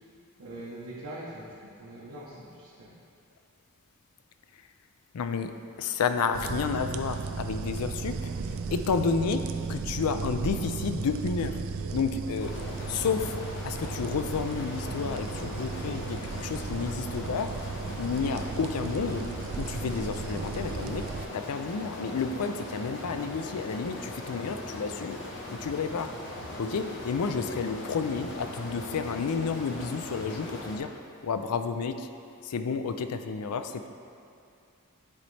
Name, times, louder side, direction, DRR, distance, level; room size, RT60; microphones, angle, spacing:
voice 1, 0.4-2.9, right 1 dB, 85° right, -9 dB, 1.2 m, -42 dB
voice 2, 5.1-5.5 5.8-8.3 8.7-11.6 11.9-12.6 12.9-13.4 13.6-17.6 18.0-19.3 19.6-21.1 21.3-25.2 25.5-26.1 26.6-30.9 31.2-32.1 32.4-33.9, left 5 dB, 80° left, 9 dB, 0.4 m, -31 dB
sound 1, 6.3-21.2, right 4 dB, 65° right, 0.3 m, -35 dB
sound 2, 12.4-30.8, left 1 dB, 55° left, 0.9 m, -40 dB
10.5 x 4.0 x 3.3 m, 2.6 s
head